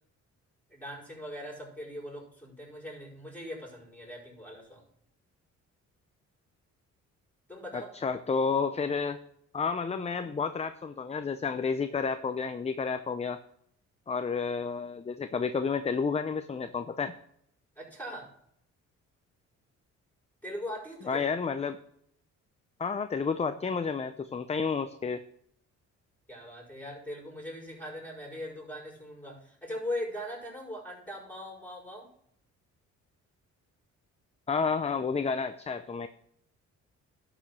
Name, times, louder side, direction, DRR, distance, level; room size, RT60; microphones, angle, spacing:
voice 1, 0.7-4.8 7.5-7.9 17.8-18.3 20.4-21.2 26.3-32.1, left 1 dB, 5° left, -2 dB, 5.0 m, -40 dB
voice 2, 7.7-9.2 9.5-13.4 14.1-17.1 21.1-21.8 22.8-25.2 34.5-36.1, left 5 dB, 20° left, 10 dB, 0.5 m, -30 dB
11.5 x 5.1 x 6.0 m, 0.70 s
cardioid pair, 90°, 30 cm